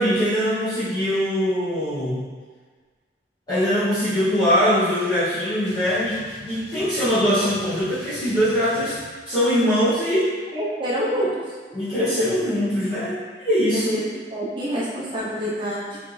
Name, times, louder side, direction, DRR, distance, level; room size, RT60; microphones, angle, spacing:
voice 1, 0.0-2.2 3.5-8.9 9.2-10.3 11.7-13.9, equal, 20° left, -16 dB, 1.2 m, -22 dB
sound 1, 5.7-9.1, left 2 dB, 65° left, 1.3 m, -43 dB
voice 2, 10.5-11.4 13.7-16.0, equal, 25° right, -8 dB, 0.9 m, -27 dB
4.0 x 3.3 x 3.3 m, 1.5 s
head